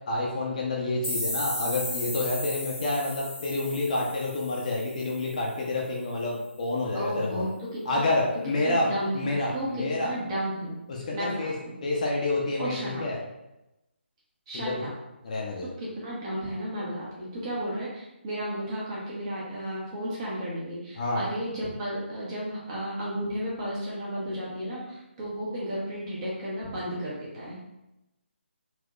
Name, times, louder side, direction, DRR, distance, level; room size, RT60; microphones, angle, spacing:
voice 1, 0.1-7.5 7.8-10.1 10.9-11.5 11.8-13.2 14.5-14.7 15.2-15.7 21.0-21.2, left 2 dB, 40° left, -2 dB, 0.6 m, -28 dB
sound 1, 1.0-5.7, left 1 dB, 85° left, 0.8 m, -35 dB
voice 2, 6.9-8.0 8.6-10.8 11.1-11.7 12.6-13.0 14.5-14.9 15.8-27.6, equal, 30° right, -7 dB, 1.2 m, -33 dB
3.4 x 3.0 x 2.3 m, 0.93 s
figure-of-eight pair, 150°, 6 cm